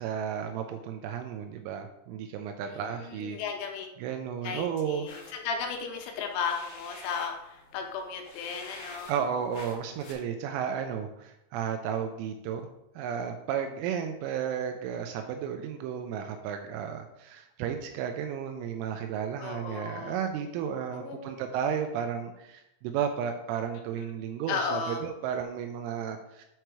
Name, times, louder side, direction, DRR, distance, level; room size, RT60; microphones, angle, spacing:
voice 1, 0.0-3.4 4.0-5.1 9.1-12.7 13.0-26.5, right 8 dB, 85° right, 5 dB, 3.0 m, -33 dB
voice 2, 2.7-3.9 4.4-9.1 19.4-20.2 20.9-21.3 24.5-25.0, left 6 dB, 85° left, 3 dB, 3.2 m, -35 dB
sound 1, 5.1-10.1, left 2 dB, 65° left, 2.3 m, -48 dB
7.7 x 3.1 x 4.6 m, 0.87 s
omnidirectional pair, 5.6 m